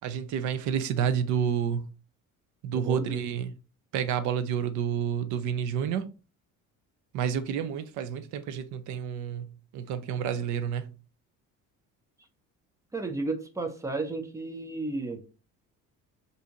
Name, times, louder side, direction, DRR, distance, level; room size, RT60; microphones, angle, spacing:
voice 1, 0.0-1.9 2.6-3.5 3.9-6.1 7.1-10.9, right 8 dB, 65° right, 0.5 m, -29 dB
voice 2, 2.7-3.2 12.9-15.2, right 3 dB, 10° right, 0.3 m, -33 dB
2.8 x 2.6 x 3.5 m
cardioid pair, 165°, 32 cm